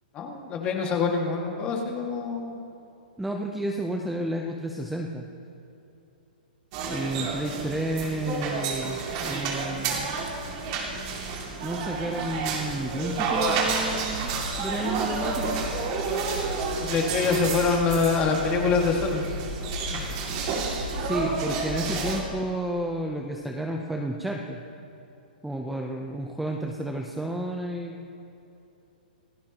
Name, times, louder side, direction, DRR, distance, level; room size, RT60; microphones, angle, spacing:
voice 1, 0.1-2.6 16.8-19.3 19.9-20.0, left 4 dB, 20° left, 1 dB, 2.0 m, -25 dB
voice 2, 3.2-5.2 6.9-10.2 11.6-15.7 20.9-24.6 25.4-28.0, right 1 dB, ahead, 1 dB, 0.6 m, -31 dB
sound 1, 6.7-22.2, right 4 dB, 35° right, 2.4 m, -30 dB
28.0 x 15.0 x 3.0 m, 2.8 s
hypercardioid pair, 165°, 5 cm